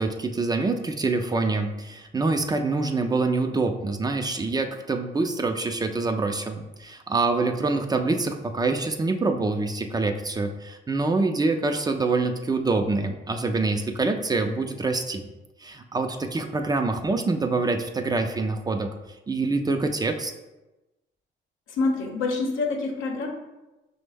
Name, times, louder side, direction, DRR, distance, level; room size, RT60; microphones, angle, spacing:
voice 1, 0.0-15.3 15.6-18.9 19.3-20.3, right 3 dB, 20° right, 6 dB, 0.4 m, -25 dB
voice 2, 21.7-23.3, left 3 dB, 90° left, 2 dB, 0.7 m, -26 dB
5.2 x 2.1 x 3.3 m, 1.0 s
cardioid pair, 90°, 20 cm